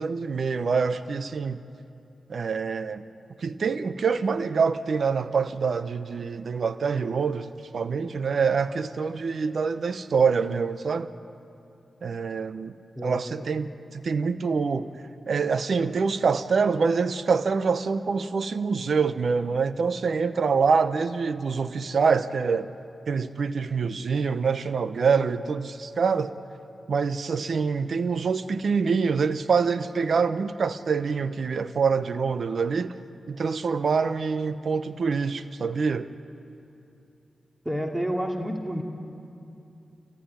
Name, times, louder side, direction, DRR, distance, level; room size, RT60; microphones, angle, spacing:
voice 1, 0.0-1.6 2.3-3.0 3.4-11.1 12.0-12.7 13.0-14.9 15.3-22.7 23.1-26.3 26.9-32.9 33.3-36.1, right 5 dB, 70° right, 12 dB, 0.8 m, -25 dB
voice 2, 37.6-38.8, equal, 15° right, 2 dB, 2.6 m, -29 dB
28.5 x 15.0 x 9.9 m, 2.7 s
cardioid pair, 45°, 0 cm